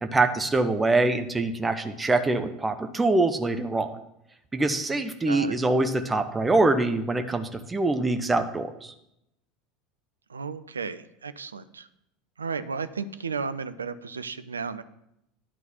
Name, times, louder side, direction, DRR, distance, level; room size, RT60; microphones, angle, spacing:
voice 1, 0.0-3.9 4.5-8.9, right 2 dB, 15° right, 7 dB, 0.8 m, -24 dB
voice 2, 5.3-5.6 10.3-11.9 12.4-14.8, right 5 dB, 75° right, 12 dB, 0.5 m, -34 dB
11.0 x 4.0 x 7.1 m, 0.81 s
figure-of-eight pair, 75°, 0 cm